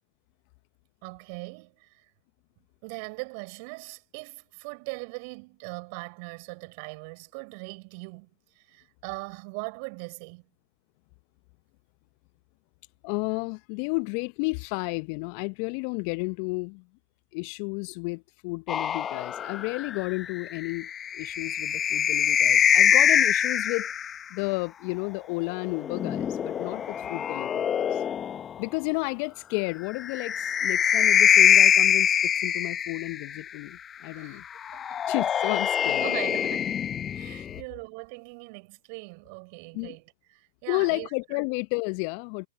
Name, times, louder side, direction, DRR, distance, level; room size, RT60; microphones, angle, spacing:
voice 1, 1.0-2.1 2.8-10.5 34.1-34.4 34.7-35.1 35.4-35.5 36.0-36.8 37.1-41.1, right 34 dB, 50° right, 6.9 m, -40 dB
voice 2, 13.0-16.8 17.3-23.9 24.3-28.0 28.6-34.4 35.1-36.0 39.7-40.0 40.7-42.5, left 32 dB, 45° left, 1.0 m, -32 dB
sound 1, 18.7-24.2 25.6-28.6 29.9-33.4 34.7-37.6, left 8 dB, 25° left, 1.2 m, -24 dB
figure-of-eight pair, 100°, 0 cm